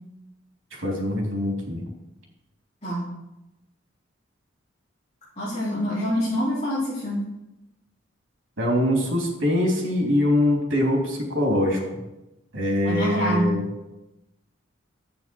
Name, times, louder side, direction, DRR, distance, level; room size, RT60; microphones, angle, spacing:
voice 1, 0.7-1.8 8.6-12.0 12.5-13.6, left 1 dB, 75° right, 0 dB, 3.1 m, -23 dB
voice 2, 5.4-7.2 12.8-13.5, equal, 35° left, -10 dB, 3.6 m, -25 dB
10.5 x 8.9 x 4.5 m, 0.96 s
head